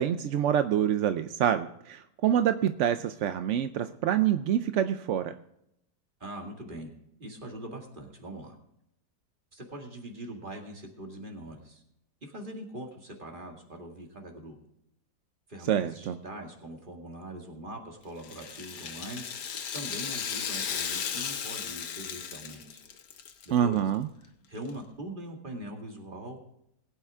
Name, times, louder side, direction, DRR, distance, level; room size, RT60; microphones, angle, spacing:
voice 1, 0.0-5.3 15.7-16.2 23.5-24.1, right 10 dB, 65° right, 10 dB, 0.7 m, -26 dB
voice 2, 6.2-6.9 7.2-8.6 9.5-11.8 12.2-14.6 15.5-22.8 23.4-23.8 24.5-26.4, right 1 dB, 30° right, 1 dB, 2.2 m, -42 dB
Rattle (instrument), 18.2-23.5 23.8-23.9 24.7-24.8, left 7 dB, 85° left, 1.6 m, -35 dB
20.5 x 9.0 x 3.6 m, 0.78 s
omnidirectional pair, 1.8 m